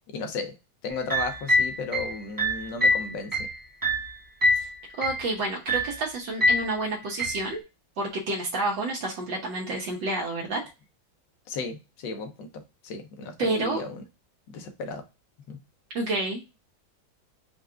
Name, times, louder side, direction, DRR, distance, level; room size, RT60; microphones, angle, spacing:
voice 1, 0.1-0.6 0.8-3.5 11.5-12.5 12.8-14.0 14.5-15.0 15.5-15.6, left 4 dB, 80° left, 1.5 m, -34 dB
sound 1, 0.9-4.7 5.0-5.3 5.7-6.0 6.4-6.7 7.2-7.5, left 1 dB, 15° right, 0.7 m, -25 dB
voice 2, 5.0-7.6 8.0-10.6 13.4-13.8 15.9-16.5, right 2 dB, 80° right, 1.6 m, -29 dB
4.6 x 2.3 x 3.6 m
omnidirectional pair, 2.0 m